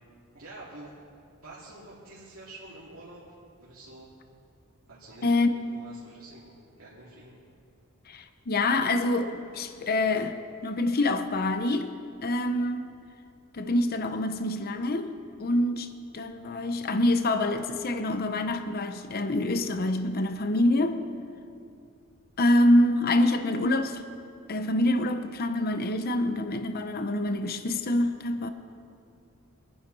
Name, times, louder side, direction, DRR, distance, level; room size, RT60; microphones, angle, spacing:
voice 1, 0.3-0.9 1.4-4.1 4.9-7.4, right 2 dB, 70° right, 2.7 m, -48 dB
voice 2, 5.2-5.6 8.1-12.0 12.2-12.9 13.5-21.1 22.4-24.0 24.5-28.5, left 1 dB, 45° left, 0.7 m, -26 dB
24.0 x 10.0 x 4.1 m
head